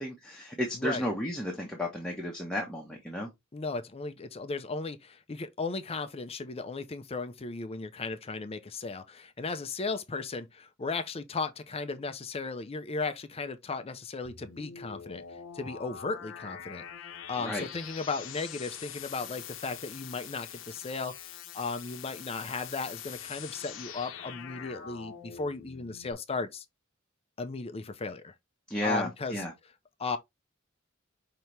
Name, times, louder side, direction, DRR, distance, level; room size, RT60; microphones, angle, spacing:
voice 1, 0.0-3.3 17.4-17.7 28.7-29.5, left 1 dB, 5° left, 1.0 m, -33 dB
voice 2, 0.7-1.1 3.5-15.2 15.5-16.8 17.3-21.1 21.5-26.6 27.4-28.3 28.8-29.4 30.0-30.2, left 4 dB, 30° left, 0.5 m, -36 dB
sound 1, 14.2-26.1, left 8 dB, 65° left, 0.8 m, -44 dB
5.7 x 2.9 x 3.2 m
head